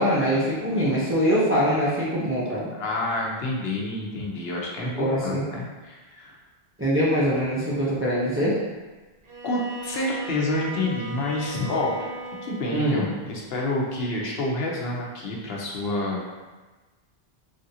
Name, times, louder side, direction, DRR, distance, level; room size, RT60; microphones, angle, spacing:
voice 1, 0.0-2.7 4.8-5.4 6.8-8.6 12.7-13.0, equal, 20° right, -8 dB, 0.4 m, -23 dB
voice 2, 2.8-6.4 9.4-12.1 12.4-16.3, left 2 dB, 70° left, -2 dB, 0.8 m, -28 dB
Bowed string instrument, 9.2-13.0, right 2 dB, 70° right, 0.8 m, -37 dB
3.3 x 2.5 x 2.7 m, 1.2 s
omnidirectional pair, 1.1 m